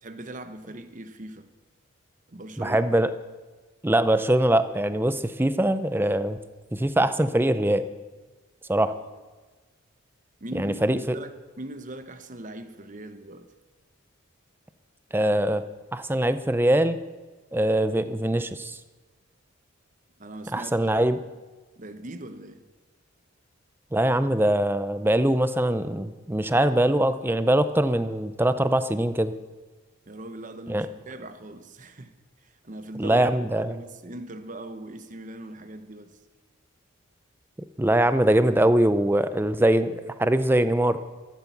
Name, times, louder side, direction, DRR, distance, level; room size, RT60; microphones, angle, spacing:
voice 1, 0.0-1.5 2.3-2.9 9.0-9.2 10.4-13.5 20.2-21.1 21.8-22.6 30.1-32.1 32.4-36.1, right 1 dB, 40° right, 10 dB, 1.0 m, -40 dB
voice 2, 2.6-3.1 3.8-6.4 6.7-7.9 8.7-8.9 10.5-11.2 15.1-15.6 15.9-17.0 17.5-18.8 20.5-21.2 23.9-29.3 30.7-30.9 33.0-33.8 37.8-41.0, right 1 dB, 10° right, 12 dB, 0.6 m, -22 dB
13.5 x 12.0 x 7.2 m, 1.3 s
head